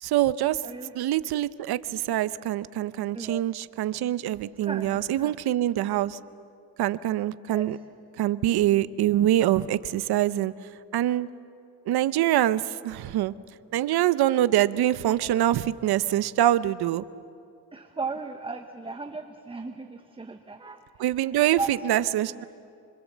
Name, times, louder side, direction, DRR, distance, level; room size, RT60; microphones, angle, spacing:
voice 1, 0.0-0.6 0.9-6.2 6.8-7.8 8.2-10.5 10.9-11.3 11.9-13.3 13.7-17.1 21.0-22.4, right 13 dB, 70° right, 16 dB, 0.8 m, -24 dB
voice 2, 4.6-5.3 7.5-7.7 17.7-21.7 21.9-22.4, right 4 dB, 15° right, 6 dB, 0.9 m, -37 dB
26.5 x 24.5 x 7.3 m, 2.5 s
cardioid pair, 125°, 40 cm